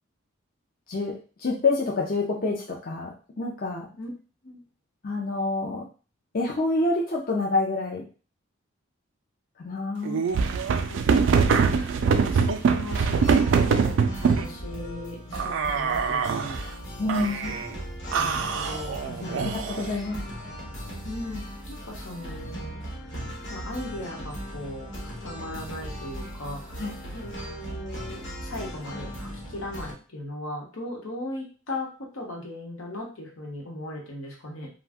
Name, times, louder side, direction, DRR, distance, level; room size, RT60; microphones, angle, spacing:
voice 1, 0.9-3.9 5.0-5.9 6.3-8.0 9.6-10.2 17.0-17.6 19.4-20.2 26.8-26.9, left 2 dB, 45° left, -2 dB, 0.5 m, -27 dB
sound 1, 10.0-14.5 15.3-16.6 17.1-17.7 18.1-19.9, right 5 dB, 65° right, 0.3 m, -23 dB
voice 2, 10.9-16.6 17.3-17.4 18.1-19.5 19.7-20.0 21.0-22.8 23.0-23.2 23.5-31.9 32.1-34.7, left 1 dB, 85° left, -1 dB, 1.0 m, -38 dB
sound 2, 12.9-29.9, equal, 60° left, 1.0 m, -38 dB
2.5 x 2.2 x 3.4 m, 0.36 s
head